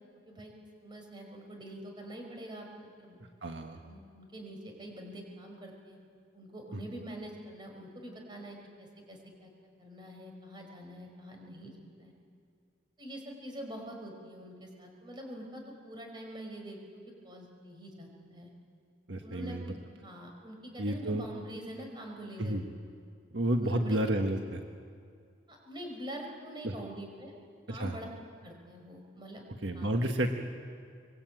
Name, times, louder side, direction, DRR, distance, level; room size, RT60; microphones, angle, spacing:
voice 1, 0.8-2.7 3.0-3.2 3.7-6.0 6.3-9.5 9.8-12.1 13.0-18.5 19.2-22.6 23.6-24.0 25.5-27.4 27.7-28.1 28.4-29.5 29.7-30.0, equal, 25° right, 2 dB, 5.6 m, -45 dB
voice 2, 3.4-3.8 19.1-19.6 20.8-21.3 22.4-22.6 23.3-24.6 26.6-26.7 27.7-27.9 29.6-30.4, right 1 dB, 75° right, 4 dB, 1.5 m, -30 dB
25.5 x 22.0 x 9.2 m, 2.3 s
head